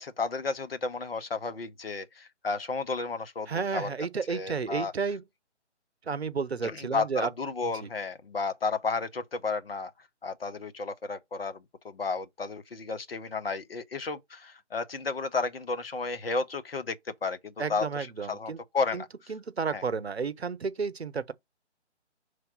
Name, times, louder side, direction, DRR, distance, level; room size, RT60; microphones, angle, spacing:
voice 1, 0.0-3.9 4.3-4.9 6.6-9.9 10.2-17.0 17.2-19.1 19.7-19.8, left 4 dB, 55° left, 0.9 m, -32 dB
voice 2, 3.5-5.2 6.1-7.3 7.6-7.9 17.6-18.6 18.9-19.0 19.3-21.3, right 5 dB, 60° right, 0.8 m, -32 dB
5.8 x 3.2 x 5.4 m
figure-of-eight pair, 145°, 35 cm